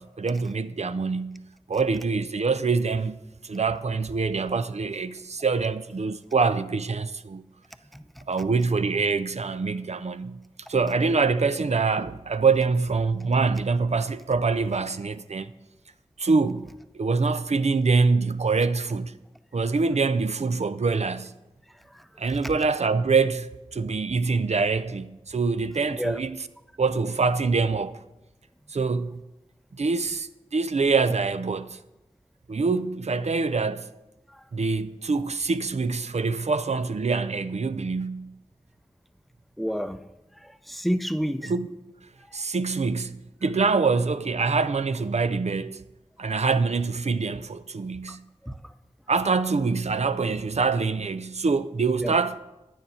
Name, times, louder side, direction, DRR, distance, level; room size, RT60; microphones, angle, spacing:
voice 1, 0.0-1.4 1.7-3.2 3.4-7.4 8.3-10.4 10.7-15.5 16.2-16.7 16.9-19.1 19.5-21.3 22.2-26.4 26.8-28.0 28.7-29.2 29.7-31.8 32.5-33.9 34.5-38.3 41.5-41.7 42.3-45.8 46.2-48.2 49.1-52.4, right 4 dB, 70° right, 0.5 m, -25 dB
voice 2, 7.9-8.2 21.7-22.5 25.9-26.2 34.3-34.5 39.6-40.0 40.4-41.5 42.3-42.4 48.1-48.2 48.4-48.7 52.0-52.2, equal, ahead, 0.6 m, -31 dB
10.5 x 9.3 x 4.3 m
wide cardioid pair, 45°, 12 cm